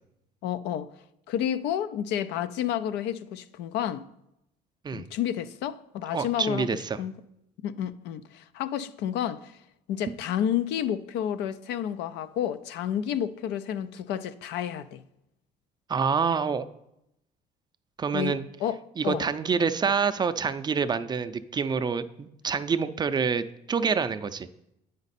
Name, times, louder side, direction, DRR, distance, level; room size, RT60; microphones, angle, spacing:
voice 1, 0.4-0.9 1.3-4.1 4.9-6.7 7.0-7.1 7.6-9.5 9.9-15.0 18.1-18.8 19.0-19.3, left 10 dB, 90° left, 0.4 m, -30 dB
voice 2, 6.1-7.0 15.9-16.6 18.0-18.4 19.0-24.5, right 5 dB, 25° right, 0.4 m, -27 dB
8.9 x 5.2 x 4.1 m
cardioid pair, 110°, 17 cm